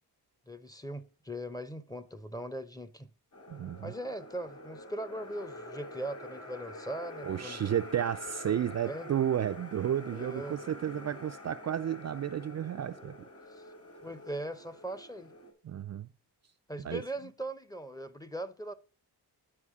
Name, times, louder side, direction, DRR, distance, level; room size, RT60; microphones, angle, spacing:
voice 1, 0.5-3.1 3.8-7.8 8.5-8.6 8.9-9.1 10.1-10.6 13.6-13.7 14.0-15.3 16.7-18.7, right 1 dB, 10° left, 0.7 m, -40 dB
sound 1, 3.3-15.5, left 1 dB, 35° left, 1.9 m, -47 dB
voice 2, 3.5-3.9 7.2-13.2 15.6-16.1 16.8-17.0, right 10 dB, 40° right, 0.4 m, -32 dB
9.8 x 4.8 x 3.6 m
cardioid pair, 100°, 41 cm